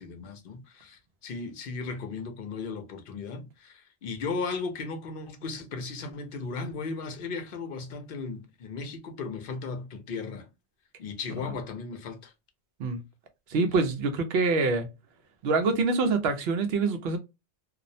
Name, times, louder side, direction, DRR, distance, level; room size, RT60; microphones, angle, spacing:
voice 1, 0.0-10.5 11.0-12.3, left 4 dB, 60° left, 0.7 m, -36 dB
voice 2, 13.5-14.9 15.4-17.2, right 3 dB, 70° right, 0.8 m, -25 dB
2.4 x 2.0 x 2.6 m
omnidirectional pair, 1.2 m